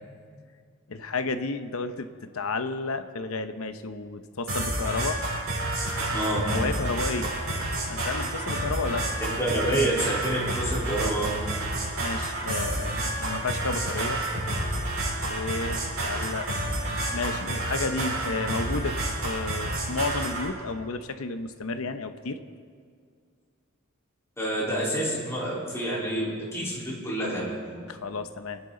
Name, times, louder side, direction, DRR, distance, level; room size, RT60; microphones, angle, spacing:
voice 1, 0.9-5.2 6.5-7.3 7.9-9.1 9.4-9.5 12.0-14.2 15.2-16.5 17.1-19.0 19.2-22.4 27.9-28.6, left 3 dB, 80° left, 9 dB, 0.8 m, -32 dB
sound 1, 4.5-20.5, right 1 dB, 80° right, 5.0 m, -29 dB
voice 2, 6.1-6.4 9.4-11.4 24.4-27.5, right 1 dB, 15° left, -7 dB, 3.9 m, -28 dB
27.0 x 10.0 x 3.9 m, 2.1 s
head